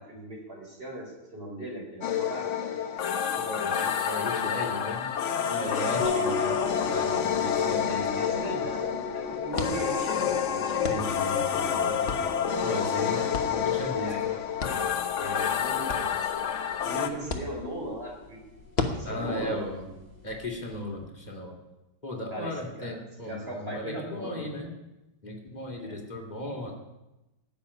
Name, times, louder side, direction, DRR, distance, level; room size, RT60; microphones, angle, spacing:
voice 1, 0.0-2.5 5.4-6.3 7.5-10.9 11.5-12.0 12.4-13.3 13.5-13.6 13.9-14.2 15.2-16.2 16.8-18.4 18.9-19.6 22.3-22.9 23.3-24.5 25.8-26.0, right 1 dB, 25° right, -1 dB, 4.5 m, -38 dB
sound 1, 2.0-17.1, left 8 dB, 60° left, 0.7 m, -29 dB
voice 2, 3.4-5.1 5.5-6.6 6.9-8.0 10.9-12.3 12.6-13.2 13.5-14.1 19.0-19.9 20.2-21.5 22.0-24.7 25.2-26.8, left 1 dB, 20° left, 1 dB, 2.3 m, -36 dB
sound 2, 6.0-20.8, left 4 dB, 50° right, 7.9 m, -39 dB
sound 3, 9.5-21.1, left 3 dB, 35° left, 1.1 m, -40 dB
15.0 x 6.9 x 9.7 m, 1.0 s
omnidirectional pair, 2.4 m